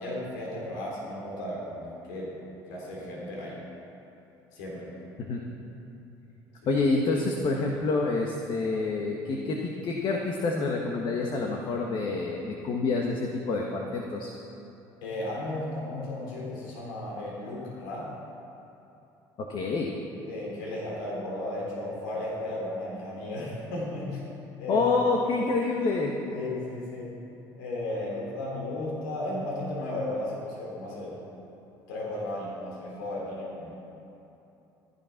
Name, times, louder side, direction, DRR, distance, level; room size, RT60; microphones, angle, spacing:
voice 1, 0.0-2.4 2.7-3.6 4.5-4.9 15.0-18.1 20.3-24.2 24.6-24.9 26.3-27.1 27.5-31.2 31.9-33.9, left 1 dB, 90° left, -4 dB, 3.6 m, -35 dB
voice 2, 6.7-14.3 19.5-19.9 24.7-26.1, left 3 dB, 55° left, 0 dB, 1.6 m, -27 dB
14.0 x 11.5 x 6.0 m, 2.9 s
supercardioid pair, 80°, 10 cm